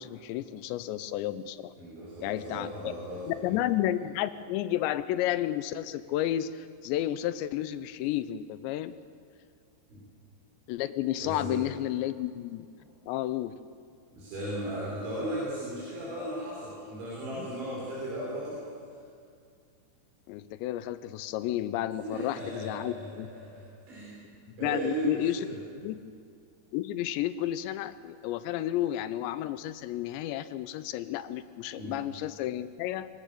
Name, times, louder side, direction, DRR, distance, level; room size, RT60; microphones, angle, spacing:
voice 1, 0.0-1.7 2.2-2.7 3.3-9.0 10.7-12.7 13.1-13.5 20.3-23.3 24.6-25.4 25.8-26.0 26.7-33.1, left 13 dB, 80° left, 13 dB, 2.9 m, -32 dB
voice 2, 1.8-3.5 9.9-10.0 11.2-11.6 14.1-18.6 22.0-24.2 24.6-25.6 31.8-31.9, right 1 dB, 85° right, -7 dB, 7.7 m, -36 dB
25.5 x 16.5 x 6.8 m, 2.2 s
omnidirectional pair, 5.2 m